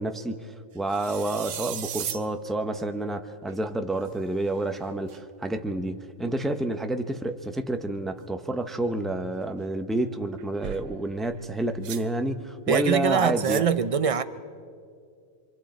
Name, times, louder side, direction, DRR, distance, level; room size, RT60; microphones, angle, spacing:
voice 1, 0.0-13.7, right 2 dB, ahead, 0.6 m, -29 dB
sound 1, 0.9-2.3 3.5-3.6 4.0-4.1 4.8-5.2 10.4-11.0 11.8-12.1 13.2-13.6, right 10 dB, 85° right, 1.1 m, -36 dB
voice 2, 12.7-14.2, right 7 dB, 40° right, 0.5 m, -23 dB
26.5 x 25.5 x 4.3 m
omnidirectional pair, 1.3 m